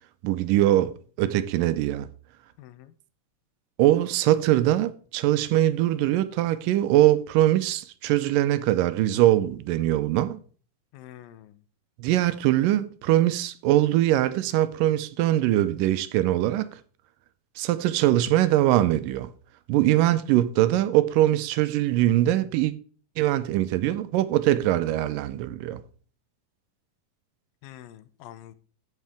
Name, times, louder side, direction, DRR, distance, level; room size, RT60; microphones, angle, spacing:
voice 1, 0.2-2.1 3.8-10.4 12.0-16.8 17.6-19.3 19.7-22.7 23.2-25.8, right 14 dB, 80° right, 2.2 m, -22 dB
voice 2, 2.6-2.9 10.9-11.6 27.6-28.6, left 13 dB, 85° left, 2.5 m, -46 dB
15.0 x 6.4 x 3.5 m
omnidirectional pair, 4.0 m